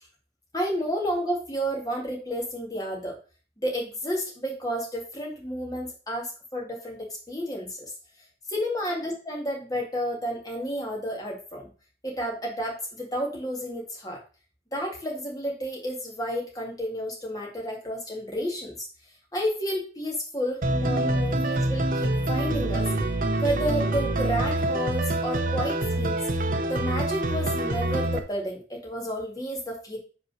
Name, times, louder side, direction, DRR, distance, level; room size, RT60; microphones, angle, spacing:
voice 1, 0.5-3.2 3.6-7.7 8.5-11.7 12.0-14.2 14.7-18.9 19.3-22.9 23.4-26.4 26.7-30.0, equal, 20° left, -1 dB, 2.1 m, -31 dB
sound 1, 20.6-28.2, right 1 dB, 45° right, 0.7 m, -26 dB
5.6 x 4.3 x 6.2 m, 0.36 s
head